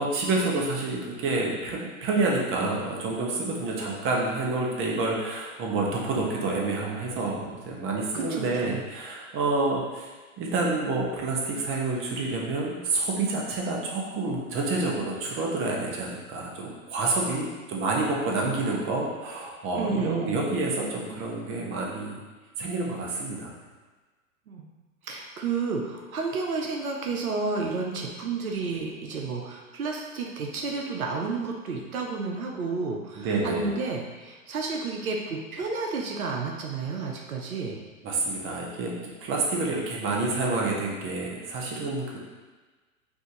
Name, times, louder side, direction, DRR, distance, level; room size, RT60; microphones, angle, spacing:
voice 1, 0.0-10.1 10.4-22.2 22.6-23.5 33.1-33.7 38.0-38.9 39.2-42.2, right 3 dB, 30° right, -2 dB, 1.0 m, -28 dB
voice 2, 8.1-8.8 19.7-20.4 24.5-24.7 25.0-37.8 39.6-39.7, right 4 dB, 80° right, 1 dB, 0.8 m, -31 dB
5.0 x 2.7 x 3.8 m, 1.3 s
hypercardioid pair, 105°, 42 cm